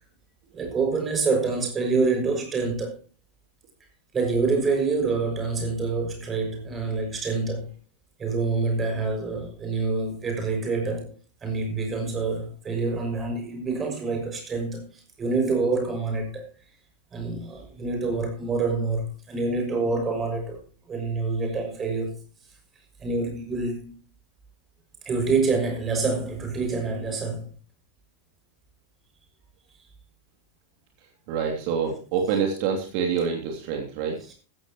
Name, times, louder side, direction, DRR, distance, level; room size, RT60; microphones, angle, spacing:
voice 1, 0.5-3.0 4.1-7.7 8.2-11.1 11.4-16.4 17.1-20.6 20.9-22.2 23.0-23.9 25.0-27.5, right 3 dB, 20° right, 6.3 m, -26 dB
voice 2, 31.3-34.2, right 6 dB, 45° right, 2.9 m, -26 dB
15.0 x 15.0 x 3.1 m
figure-of-eight pair, 90°, 0 cm